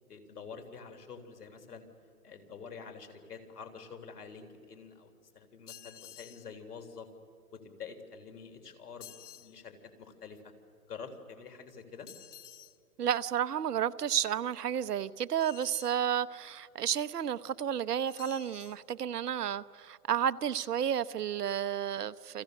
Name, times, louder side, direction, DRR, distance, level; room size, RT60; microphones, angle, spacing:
voice 1, 0.1-1.9 2.2-7.1 7.5-10.4 10.9-12.1, left 5 dB, 80° left, 3.9 m, -47 dB
sound 1, 5.7-6.5 9.0-9.5 12.1-12.8 15.4-16.0 18.1-18.8, left 11 dB, 50° left, 1.0 m, -51 dB
voice 2, 13.0-22.4, right 9 dB, 85° right, 0.9 m, -32 dB
30.0 x 25.0 x 6.6 m
hypercardioid pair, 155°, 46 cm